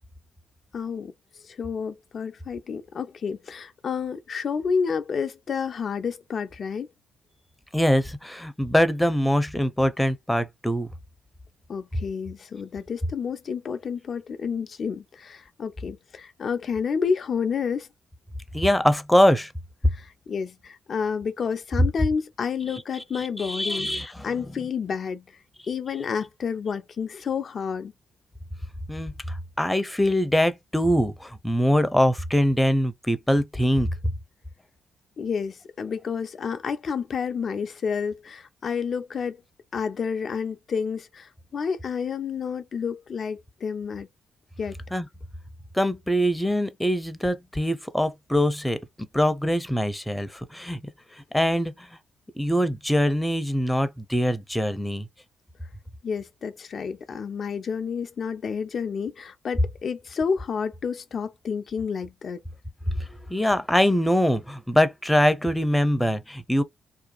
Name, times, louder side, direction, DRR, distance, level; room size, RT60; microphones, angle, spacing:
voice 1, 0.7-1.1 1.4-6.9 11.7-17.9 19.9-25.2 25.7-27.9 35.2-39.4 39.7-44.1 44.6-44.8 56.0-62.4, left 6 dB, 55° left, 0.3 m, -30 dB
voice 2, 7.7-10.9 18.5-19.5 23.1-24.3 28.9-34.1 44.9-45.1 45.7-50.8 51.3-51.9 52.4-55.1 62.9-66.6, equal, 5° left, 0.6 m, -23 dB
2.6 x 2.3 x 2.3 m
supercardioid pair, 55°, 0 cm